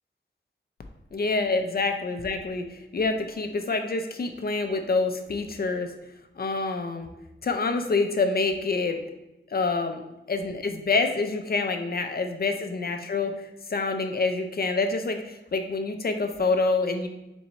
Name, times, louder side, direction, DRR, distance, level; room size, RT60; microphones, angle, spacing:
voice 1, 1.1-2.6 2.9-5.9 6.4-7.1 7.4-9.0 9.5-10.0 10.3-13.3 13.7-17.1, left 3 dB, 50° left, 6 dB, 0.5 m, -26 dB
4.1 x 3.5 x 3.0 m, 0.96 s
wide cardioid pair, 95°, 20 cm